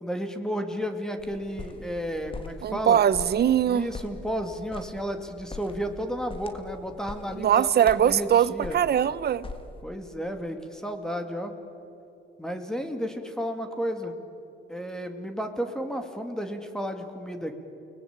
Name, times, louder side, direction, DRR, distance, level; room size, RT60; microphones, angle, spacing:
voice 1, 0.0-3.0 3.7-8.8 9.8-11.5 12.4-14.1 14.7-17.5, equal, 5° left, 6 dB, 2.5 m, -32 dB
sound 1, 1.2-9.8, left 3 dB, 25° left, 2.3 m, -43 dB
voice 2, 2.6-3.9 7.3-9.5, right 9 dB, 55° right, 17 dB, 0.9 m, -22 dB
29.0 x 20.5 x 9.0 m, 2.9 s
cardioid pair, 90°, 20 cm